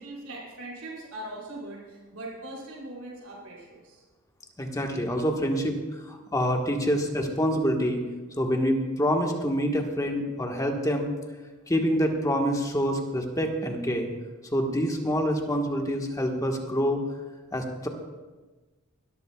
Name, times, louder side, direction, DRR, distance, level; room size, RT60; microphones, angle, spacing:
voice 1, 0.0-4.0, right 1 dB, 80° right, -5 dB, 4.9 m, -40 dB
voice 2, 4.6-8.0 8.4-11.1 11.7-14.1 14.5-17.0 17.5-17.9, equal, 15° left, 2 dB, 1.4 m, -26 dB
22.5 x 13.5 x 2.3 m, 1.2 s
head